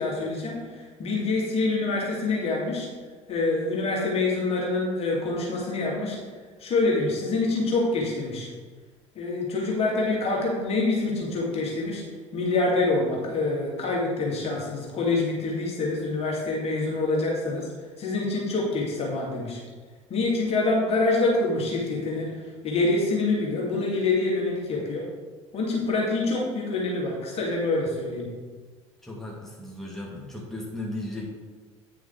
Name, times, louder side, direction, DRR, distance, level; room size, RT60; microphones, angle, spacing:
voice 1, 0.0-2.9 3.3-6.2 6.6-8.5 9.2-12.0 12.3-17.7 18.0-19.6 20.1-22.4 22.6-25.1 25.5-28.3, left 3 dB, 40° left, -3 dB, 2.3 m, -26 dB
voice 2, 29.0-31.4, left 1 dB, ahead, -4 dB, 2.1 m, -36 dB
9.3 x 6.0 x 3.9 m, 1.4 s
figure-of-eight pair, 60°, 16 cm